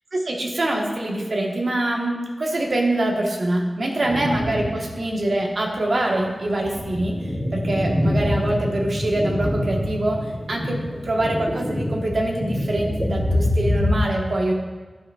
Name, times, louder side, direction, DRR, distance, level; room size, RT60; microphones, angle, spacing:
voice 1, 0.1-10.2 10.5-10.8 11.0-14.5, right 1 dB, 65° right, 0 dB, 1.3 m, -24 dB
sound 1, 4.0-4.9 5.4-5.5 6.1-14.0, left 1 dB, 5° right, 2.0 m, -25 dB
11.5 x 5.1 x 2.4 m, 1.3 s
cardioid pair, 45°, 0 cm